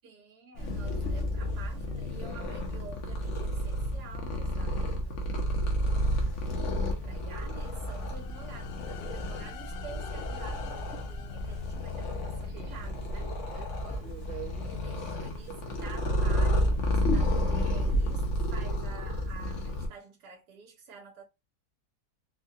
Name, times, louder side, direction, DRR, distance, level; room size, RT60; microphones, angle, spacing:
voice 1, 0.0-5.9 6.2-13.4 13.8-14.1 14.5-21.2, right 5 dB, 85° right, 1.3 m, -49 dB
Purr, 0.5-19.9, equal, 55° left, 1.1 m, -31 dB
sound 1, 7.9-12.7, left 9 dB, 85° left, 1.2 m, -49 dB
Subway metro underground, 10.2-18.1, right 7 dB, 45° right, 1.0 m, -50 dB
4.5 x 2.2 x 2.7 m
omnidirectional pair, 1.7 m